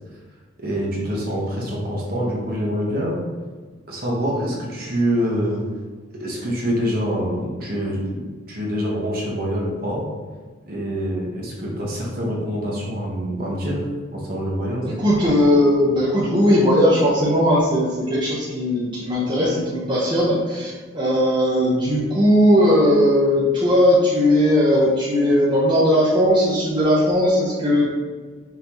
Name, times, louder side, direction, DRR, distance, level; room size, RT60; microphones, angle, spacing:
voice 1, 0.6-3.2 3.9-5.6 6.2-10.0 10.7-13.8 14.1-14.9, equal, 45° right, -3 dB, 1.0 m, -25 dB
voice 2, 14.8-27.9, equal, 20° right, -8 dB, 0.7 m, -18 dB
5.6 x 2.8 x 3.0 m, 1.4 s
head